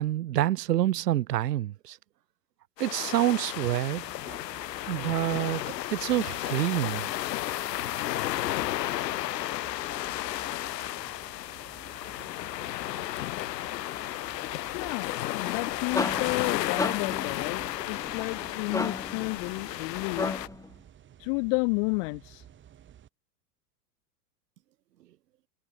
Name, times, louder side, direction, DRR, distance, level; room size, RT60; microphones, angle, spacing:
voice 1, 0.0-2.0 2.8-4.1 4.9-5.6 5.9-7.1, right 13 dB, 75° right, 4.8 m, -27 dB
sound 1, 2.8-20.5, left 15 dB, 85° left, 1.1 m, -33 dB
sound 2, 4.0-23.1, right 10 dB, 25° right, 7.2 m, -53 dB
voice 2, 14.7-20.3 21.2-22.4, left 40 dB or more, 45° left, 4.9 m, -31 dB
sound 3, 15.7-20.7, left 3 dB, 5° left, 6.3 m, -35 dB
supercardioid pair, 145°, 48 cm